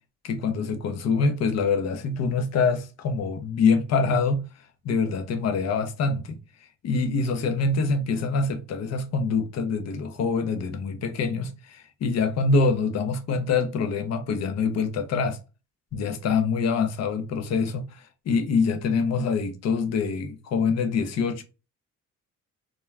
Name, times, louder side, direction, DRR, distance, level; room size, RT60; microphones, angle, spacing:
voice 1, 0.2-4.5 4.8-6.4 6.8-15.4 15.9-21.4, left 4 dB, 60° left, 0.6 m, -25 dB
2.3 x 2.2 x 3.1 m
cardioid pair, 90°, 30 cm